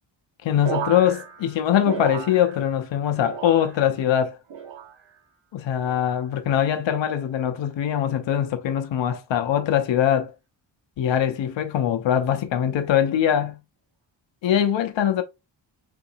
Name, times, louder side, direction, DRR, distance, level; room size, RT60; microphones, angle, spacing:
voice 1, 0.4-4.4 5.5-10.3 11.0-13.6 14.4-15.2, left 10 dB, 70° left, 0.6 m, -22 dB
sound 1, 0.6-2.9 3.1-4.0 4.5-5.2 5.8-6.3 7.1-7.5 8.5-8.8, right 8 dB, 70° right, 1.1 m, -35 dB
5.7 x 2.6 x 2.6 m
wide cardioid pair, 135°, 47 cm